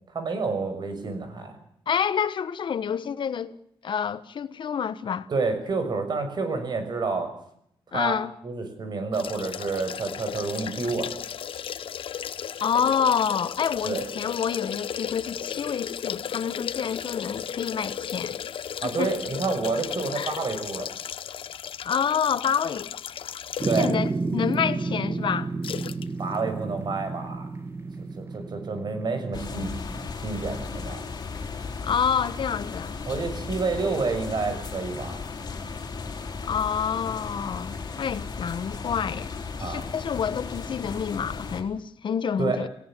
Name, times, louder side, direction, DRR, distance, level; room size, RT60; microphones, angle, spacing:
voice 1, 0.1-1.5 5.3-7.3 7.9-8.1 8.4-11.1 13.8-14.0 18.8-20.9 23.6-23.9 26.2-27.5 28.0-29.7 30.2-31.0 33.1-35.3 39.6-39.9 42.4-42.6, right 4 dB, 55° right, 6.5 m, -29 dB
voice 2, 1.9-3.6 3.8-5.3 7.9-8.3 12.6-18.4 19.0-19.1 20.1-20.4 21.8-22.9 23.7-25.5 31.8-33.0 36.5-42.7, left 7 dB, 60° left, 1.2 m, -28 dB
sound 1, 9.1-24.1 24.5-24.6 25.6-26.1 26.3-26.4, left 9 dB, 80° left, 1.0 m, -35 dB
sound 2, 23.6-30.1, right 3 dB, 30° right, 2.2 m, -31 dB
sound 3, 29.3-41.6, left 4 dB, 45° left, 4.5 m, -35 dB
28.5 x 17.5 x 7.6 m
wide cardioid pair, 140°, 9 cm